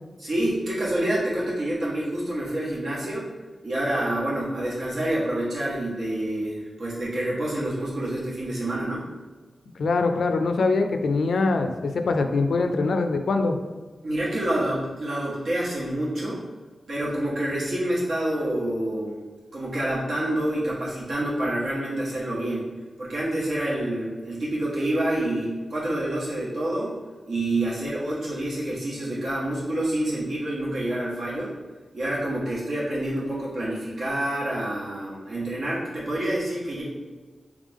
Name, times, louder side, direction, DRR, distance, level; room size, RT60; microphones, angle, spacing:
voice 1, 0.2-3.3 3.6-9.0 14.0-16.4 16.9-19.2 19.5-22.7 23.0-27.0 27.3-31.5 31.9-36.8, right 1 dB, 80° right, -7 dB, 1.4 m, -27 dB
voice 2, 9.8-13.6, left 3 dB, 90° left, 6 dB, 0.4 m, -23 dB
3.5 x 3.3 x 3.5 m, 1.4 s
wide cardioid pair, 85°, 0 cm